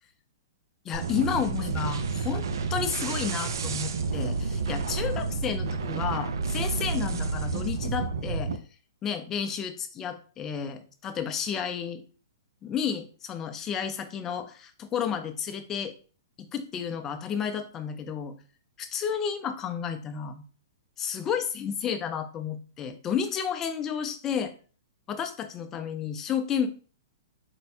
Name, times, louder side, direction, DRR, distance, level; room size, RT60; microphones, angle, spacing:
voice 1, 0.8-2.4 2.7-8.6 9.0-12.0 12.6-15.9 16.4-18.3 18.9-20.4 21.0-24.5 25.1-26.7, left 7 dB, 20° left, 7 dB, 0.4 m, -31 dB
sound 1, 0.9-8.6, right 4 dB, 75° right, 0.5 m, -30 dB
4.4 x 2.2 x 4.2 m, 0.39 s
hypercardioid pair, 160°, 2 cm